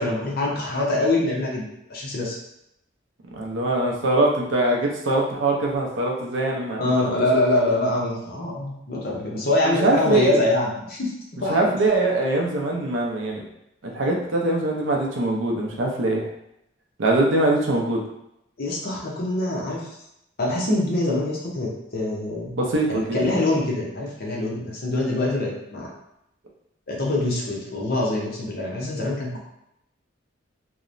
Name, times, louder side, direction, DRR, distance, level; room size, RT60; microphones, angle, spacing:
voice 1, 0.0-2.4 6.8-11.1 11.4-11.7 18.6-19.9 20.4-22.6 22.9-25.9 26.9-29.4, left 2 dB, 50° left, -3 dB, 0.6 m, -24 dB
voice 2, 3.3-6.9 9.6-10.4 11.5-13.4 13.8-16.3 17.0-18.0 22.6-23.3, right 2 dB, 65° right, -1 dB, 0.5 m, -22 dB
2.9 x 2.0 x 2.5 m, 0.81 s
head